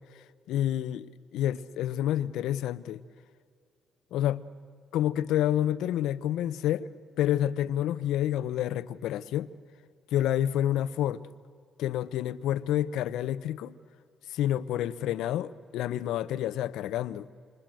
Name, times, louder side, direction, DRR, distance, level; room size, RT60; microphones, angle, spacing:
voice 1, 0.5-1.1 1.3-3.0 4.1-4.4 4.9-6.9 7.2-9.5 10.1-11.2 11.8-13.7 14.3-17.3, left 12 dB, 90° left, 0.8 m, -28 dB
28.0 x 26.0 x 7.7 m
cardioid pair, 90°, 0 cm